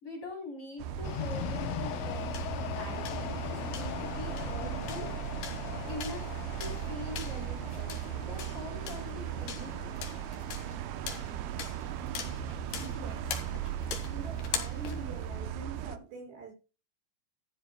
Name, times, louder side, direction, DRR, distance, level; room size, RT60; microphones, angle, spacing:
voice 1, 0.0-2.5 2.7-5.1 5.8-6.3 6.6-10.0, left 2 dB, 30° left, 3.9 m, -44 dB
sound 1, 0.8-16.0, right 12 dB, 85° right, 2.2 m, -38 dB
sound 2, 0.9-15.6, left 6 dB, 60° left, 3.4 m, -43 dB
sound 3, 1.0-10.8, left 13 dB, 85° left, 3.1 m, -41 dB
voice 2, 12.8-13.5 14.1-16.5, right 4 dB, 65° right, 7.8 m, -45 dB
15.0 x 12.5 x 2.2 m
omnidirectional pair, 5.4 m